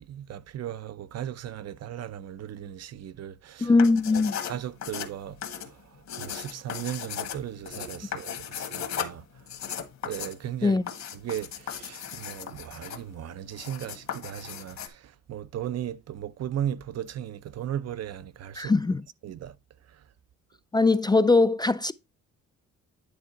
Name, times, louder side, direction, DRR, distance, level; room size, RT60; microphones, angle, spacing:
voice 1, 0.0-3.7 4.1-5.7 6.2-9.2 10.1-10.8 11.2-15.0 15.3-18.7 19.2-19.5, right 10 dB, 55° right, 0.6 m, -36 dB
voice 2, 3.6-4.4 10.6-10.9 18.6-19.0 20.7-21.9, left 3 dB, 15° left, 0.4 m, -21 dB
sound 1, 3.7-14.9, left 8 dB, 65° left, 1.6 m, -37 dB
10.0 x 3.7 x 4.5 m
cardioid pair, 90°, 30 cm